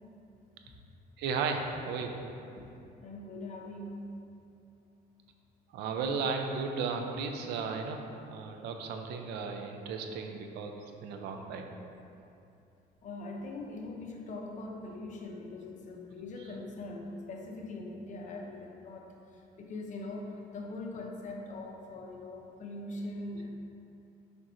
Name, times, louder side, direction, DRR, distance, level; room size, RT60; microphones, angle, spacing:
voice 1, 1.2-2.1 5.7-10.7 11.0-11.7, right 5 dB, 85° right, 4 dB, 0.6 m, -35 dB
voice 2, 3.0-4.1 13.0-19.1 19.6-23.5, left 2 dB, 45° left, 0 dB, 0.9 m, -41 dB
6.4 x 5.2 x 3.1 m, 2.7 s
cardioid pair, 110°, 17 cm